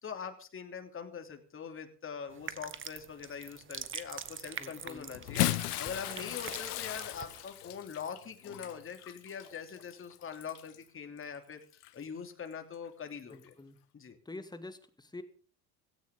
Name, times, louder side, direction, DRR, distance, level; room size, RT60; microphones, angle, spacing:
voice 1, 0.0-5.5 5.8-11.6 11.9-13.5 13.9-14.2, left 6 dB, 25° left, 5 dB, 3.0 m, -43 dB
sound 1, 2.3-7.4, right 7 dB, 25° right, 1.5 m, -44 dB
voice 2, 4.6-5.1 13.3-13.8 14.3-15.2, left 2 dB, 10° left, 10 dB, 2.2 m, -46 dB
Bathtub (filling or washing) / Splash splatter, 5.1-10.8 11.7-11.9 13.3-13.4, left 15 dB, 65° left, 1.2 m, -36 dB
17.0 x 17.0 x 3.8 m, 0.40 s
figure-of-eight pair, 70°, 49 cm